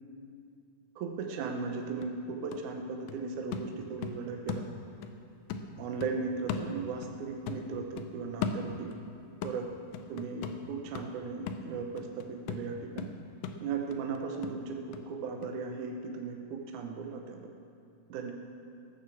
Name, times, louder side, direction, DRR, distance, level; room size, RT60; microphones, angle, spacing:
voice 1, 1.0-4.7 5.8-8.9 9.4-9.7 10.1-13.1 13.6-17.4 18.1-18.3, right 5 dB, 70° right, 2 dB, 2.0 m, -37 dB
sound 1, 1.6-1.7 2.0-5.2 5.5-7.2 7.5-9.1 9.4-15.1 15.4-15.5, left 6 dB, 75° left, 2.3 m, -39 dB
16.0 x 9.3 x 7.0 m, 2.6 s
omnidirectional pair, 4.2 m